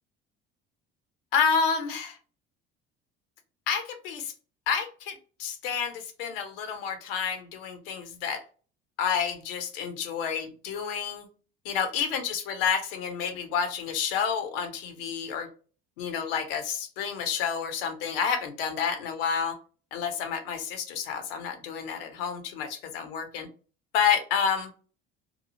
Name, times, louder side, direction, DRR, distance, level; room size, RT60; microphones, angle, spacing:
voice 1, 1.3-2.2 3.7-4.3 4.7-8.4 9.0-11.3 11.6-15.5 16.0-19.6 19.9-23.5 23.9-24.7, left 6 dB, 75° left, 8 dB, 0.7 m, -29 dB
2.8 x 2.3 x 2.7 m, 0.39 s
hypercardioid pair, 65°, 29 cm